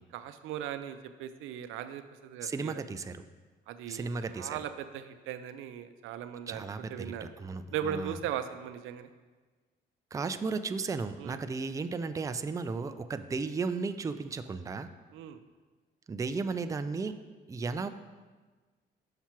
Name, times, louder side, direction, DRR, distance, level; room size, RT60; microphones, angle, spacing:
voice 1, 0.1-2.8 3.7-4.1 4.3-6.7 6.9-7.3 7.7-9.1 11.2-11.4 15.1-15.4, right 9 dB, 90° right, 10 dB, 0.4 m, -38 dB
voice 2, 2.4-3.2 3.9-4.6 6.5-8.2 10.1-14.9 16.1-17.1 17.5-17.9, right 4 dB, 15° right, 10 dB, 0.3 m, -35 dB
5.8 x 5.8 x 4.4 m, 1.4 s
cardioid pair, 90°, 20 cm